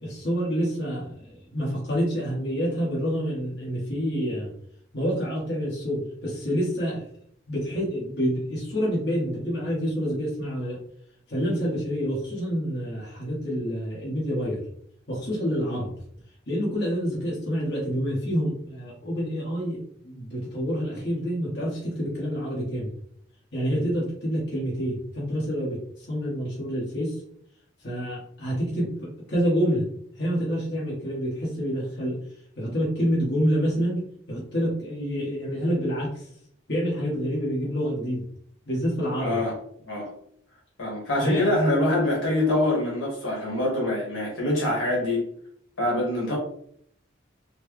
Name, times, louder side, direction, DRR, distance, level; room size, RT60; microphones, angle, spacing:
voice 1, 0.0-4.5 4.9-7.0 7.5-10.8 11.3-14.6 15.1-15.9 16.5-22.9 23.5-27.2 27.8-29.8 30.2-32.2 32.5-36.2 36.7-38.2 38.7-39.4 41.2-41.5, equal, 55° left, -6 dB, 1.4 m, -27 dB
voice 2, 39.2-39.6 39.8-40.1 40.8-45.3 45.8-46.4, left 1 dB, 75° left, -3 dB, 1.6 m, -24 dB
4.3 x 2.2 x 3.2 m, 0.65 s
head